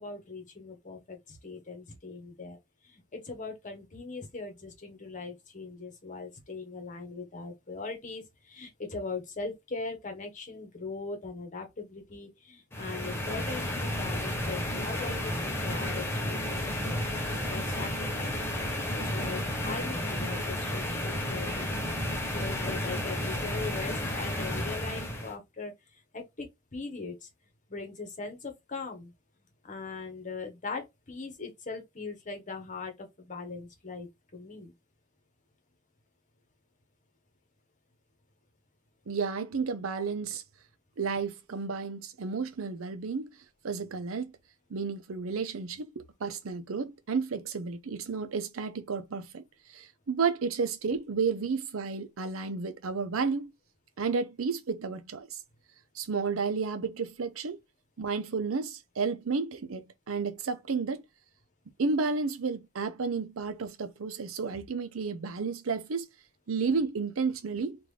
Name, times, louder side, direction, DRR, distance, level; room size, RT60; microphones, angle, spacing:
voice 1, 0.0-2.6 2.8-16.6 16.8-17.0 17.5-18.3 18.7-27.3 27.7-29.1 29.6-34.7, left 4 dB, 40° left, 1.2 m, -40 dB
sound 1, 12.7-25.3, left 1 dB, 10° left, 0.9 m, -32 dB
voice 2, 39.1-40.4 41.0-43.3 43.6-44.4 44.7-49.4 49.7-53.5 54.0-55.4 56.0-57.6 58.0-61.0 61.8-66.1 66.5-67.9, right 5 dB, 85° right, 0.6 m, -32 dB
3.7 x 2.6 x 3.2 m
head